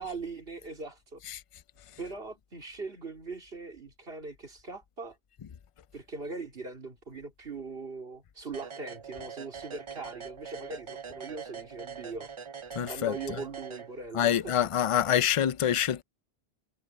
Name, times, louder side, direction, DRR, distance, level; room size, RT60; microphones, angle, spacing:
voice 1, 0.0-1.2 2.0-5.2 5.9-12.3 12.8-14.5, right 3 dB, 65° right, 3.1 m, -40 dB
sound 1, 8.5-14.3, right 6 dB, 40° right, 0.5 m, -43 dB
voice 2, 12.7-13.4 14.1-16.0, left 10 dB, 50° left, 0.4 m, -26 dB
omnidirectional pair, 1.1 m